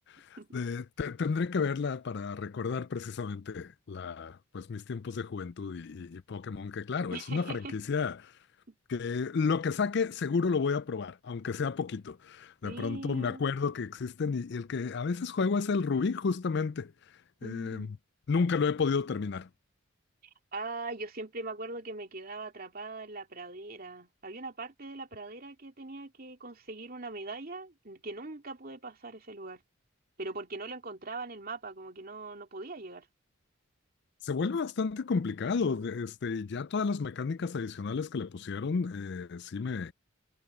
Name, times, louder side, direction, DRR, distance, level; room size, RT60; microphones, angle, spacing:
voice 1, 0.0-8.3 8.9-16.9 17.4-18.0 18.3-19.5 34.2-39.9, left 5 dB, 55° left, 0.4 m, -32 dB
voice 2, 7.1-7.7 8.7-8.8 12.6-13.4 17.4-17.9 20.5-29.6 30.2-33.1, right 3 dB, 45° right, 2.8 m, -41 dB
head